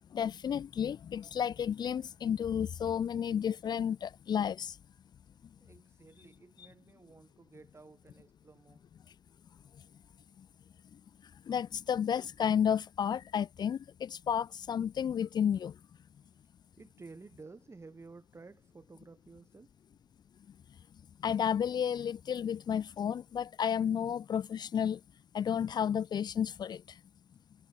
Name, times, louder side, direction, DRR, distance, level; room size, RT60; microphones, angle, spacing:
voice 1, 0.1-4.8 6.6-6.7 11.5-15.7 21.2-25.0 25.3-27.0, left 8 dB, 50° left, 0.8 m, -32 dB
voice 2, 5.6-8.8 16.8-19.7, right 3 dB, 30° right, 5.4 m, -53 dB
hypercardioid pair, 50°, 9 cm